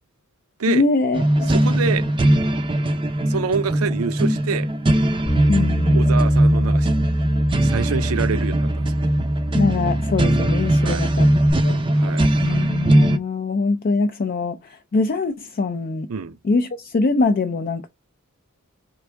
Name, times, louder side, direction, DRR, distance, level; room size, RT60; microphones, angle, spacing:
voice 1, 0.7-1.5 5.5-6.4 9.5-11.3 11.6-12.1 12.4-16.1 16.4-17.9, left 3 dB, 45° left, 0.4 m, -23 dB
sound 1, 1.1-13.2, right 1 dB, 25° right, 0.5 m, -20 dB
voice 2, 1.5-2.1 3.3-4.7 5.9-6.9 7.6-9.1 10.8-11.1 12.0-12.7 16.1-16.4, right 5 dB, 90° right, 0.6 m, -27 dB
Bass guitar, 5.3-11.5, equal, 15° left, 0.9 m, -24 dB
4.6 x 2.5 x 3.3 m
head